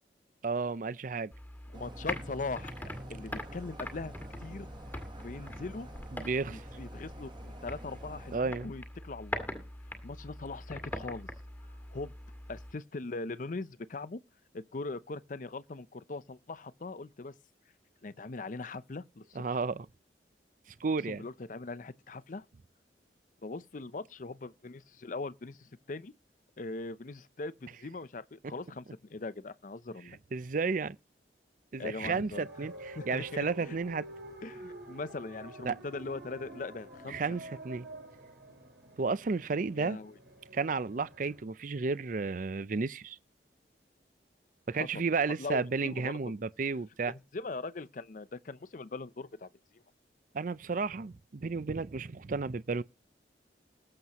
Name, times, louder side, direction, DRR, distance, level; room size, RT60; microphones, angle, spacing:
voice 1, 0.4-1.3 6.1-6.6 8.3-8.7 19.4-19.9 20.8-21.3 30.3-31.0 31.7-34.1 35.6-35.8 37.1-37.9 39.0-40.0 40.5-43.2 44.7-47.1 50.3-52.8, right 4 dB, 50° right, 0.5 m, -32 dB
sound 1, 1.3-12.7, left 1 dB, 10° left, 2.2 m, -43 dB
voice 2, 1.7-2.7 3.1-4.1 4.4-4.7 5.2-5.9 6.5-9.5 10.0-11.3 11.9-12.1 12.5-14.2 14.5-17.3 18.0-19.6 21.1-22.5 23.4-26.1 26.6-28.8 29.1-30.2 31.8-32.5 33.0-33.8 34.4-37.2 39.7-40.1 44.7-45.0 45.4-46.1 47.1-49.8, left 3 dB, 45° left, 0.6 m, -41 dB
sound 2, 1.7-8.4, right 1 dB, 25° right, 1.2 m, -48 dB
sound 3, 32.3-41.4, right 1 dB, 70° right, 6.5 m, -48 dB
20.0 x 7.7 x 3.0 m
head